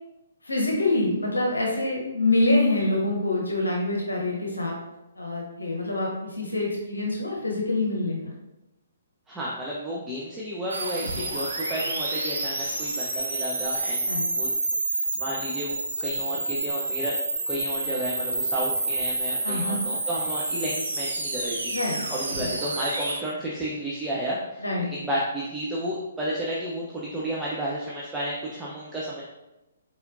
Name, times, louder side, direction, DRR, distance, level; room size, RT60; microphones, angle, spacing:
voice 1, 0.4-4.8 5.2-8.3 14.1-14.3 19.4-19.8 21.7-22.0 22.4-22.5 24.6-24.9, left 2 dB, 75° left, -1 dB, 0.9 m, -25 dB
voice 2, 9.3-14.5 15.1-17.2 17.5-21.7 22.1-24.6 24.9-29.2, equal, 10° right, -6 dB, 0.6 m, -32 dB
sound 1, 10.7-23.2, right 2 dB, 70° right, 0.8 m, -29 dB
4.2 x 4.1 x 2.6 m, 0.96 s
figure-of-eight pair, 125°, 0 cm